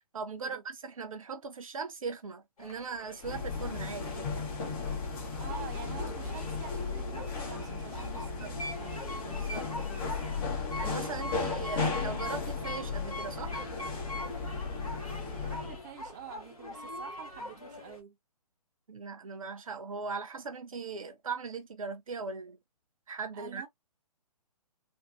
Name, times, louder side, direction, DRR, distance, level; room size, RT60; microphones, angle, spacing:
voice 1, 0.1-4.3 8.4-8.5 9.2-10.0 10.7-13.5 18.9-22.6 23.1-23.6, right 5 dB, 60° right, 0.6 m, -39 dB
sound 1, 2.6-18.0, left 1 dB, 65° left, 1.6 m, -43 dB
sound 2, 3.2-15.8, left 4 dB, 35° left, 1.4 m, -35 dB
voice 2, 5.3-9.1 15.4-18.2 23.3-23.7, right 8 dB, 30° right, 0.8 m, -48 dB
3.5 x 2.5 x 2.5 m
figure-of-eight pair, 130°, 20 cm